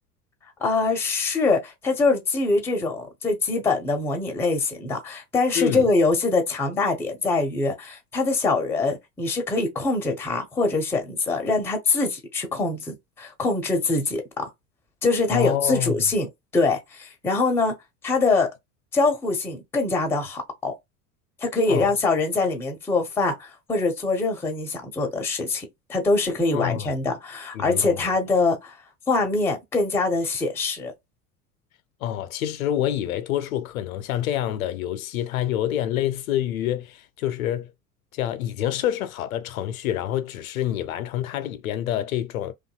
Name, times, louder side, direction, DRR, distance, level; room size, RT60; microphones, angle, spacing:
voice 1, 0.6-14.5 15.0-17.8 18.0-18.5 18.9-20.7 21.4-28.7 29.1-30.9, left 3 dB, 5° left, 0.4 m, -24 dB
voice 2, 5.5-5.9 15.3-16.0 21.7-22.0 26.5-27.0 27.5-28.1 32.0-37.7 38.1-42.5, left 11 dB, 65° left, 0.5 m, -27 dB
2.6 x 2.3 x 2.3 m
figure-of-eight pair, 75°, 47 cm